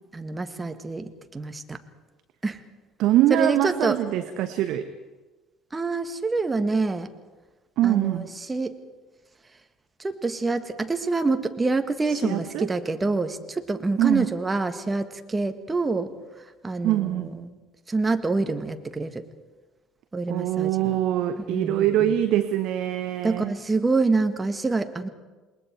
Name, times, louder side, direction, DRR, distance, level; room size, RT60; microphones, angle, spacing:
voice 1, 0.1-1.8 2.4-2.6 3.3-4.0 5.7-7.1 7.8-8.8 10.0-16.1 16.6-17.6 17.9-19.2 20.1-21.0 21.4-22.2 23.2-25.1, right 3 dB, 20° right, 8 dB, 1.7 m, -26 dB
voice 2, 3.0-4.9 7.8-8.3 12.1-12.7 14.0-14.3 16.8-17.3 20.3-23.5, right 12 dB, 55° right, 9 dB, 1.0 m, -23 dB
28.5 x 21.0 x 4.7 m, 1.2 s
figure-of-eight pair, 60°, 0 cm